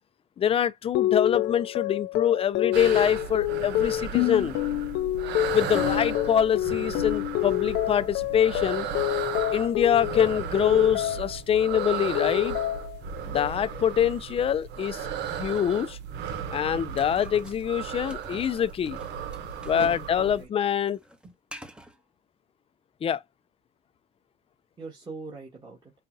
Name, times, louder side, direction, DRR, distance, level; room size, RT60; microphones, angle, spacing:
voice 1, 0.4-4.6 5.5-8.9 9.5-12.6 13.3-16.0 16.5-19.0 19.6-21.0 23.0-23.2, left 9 dB, 35° left, 0.5 m, -25 dB
sound 1, 1.0-11.4 11.8-13.0 13.4-13.9, left 15 dB, 85° left, 0.6 m, -28 dB
sound 2, 2.7-20.4, right 8 dB, 80° right, 1.0 m, -35 dB
sound 3, 17.0-20.1 20.4-22.0, equal, 5° right, 0.8 m, -47 dB
voice 2, 19.6-20.5 21.2-21.3 24.8-25.9, right 4 dB, 25° right, 1.7 m, -40 dB
5.3 x 2.4 x 2.7 m
cardioid pair, 110°, 17 cm